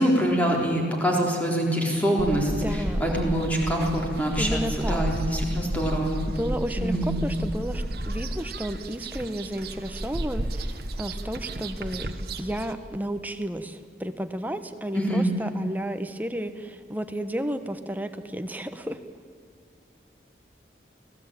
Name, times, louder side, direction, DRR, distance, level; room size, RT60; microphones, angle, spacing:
voice 1, 0.0-6.2 6.8-7.1 14.9-15.3, equal, 10° left, -2 dB, 3.8 m, -25 dB
sound 1, 2.2-12.7, right 1 dB, 55° right, 1.3 m, -32 dB
voice 2, 2.6-3.1 4.4-5.0 6.3-12.1 12.4-19.0, equal, 10° right, 8 dB, 1.0 m, -32 dB
25.5 x 18.0 x 9.0 m, 2.2 s
head